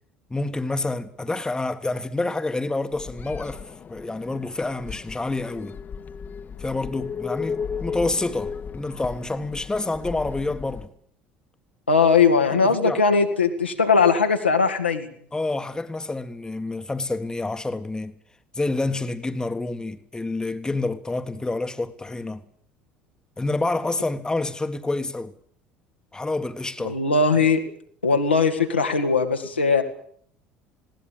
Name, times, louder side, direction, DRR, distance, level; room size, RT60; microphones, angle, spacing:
voice 1, 0.3-3.6 3.9-5.8 6.6-10.9 12.5-13.0 15.3-18.1 18.5-22.4 23.4-25.3 26.1-27.0, left 2 dB, 10° left, 1.6 m, -28 dB
sound 1, 2.9-10.9, left 6 dB, 30° left, 1.5 m, -35 dB
voice 2, 11.9-15.1 26.8-27.6 28.0-29.8, left 4 dB, 85° left, 2.3 m, -19 dB
20.0 x 18.0 x 8.8 m
figure-of-eight pair, 60°, 6 cm